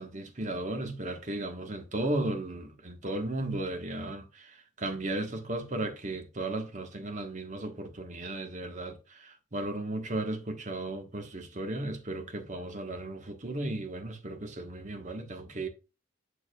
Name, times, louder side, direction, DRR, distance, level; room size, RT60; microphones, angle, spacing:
voice 1, 0.0-15.7, right 2 dB, 40° right, 1.3 m, -35 dB
7.2 x 6.7 x 2.3 m
head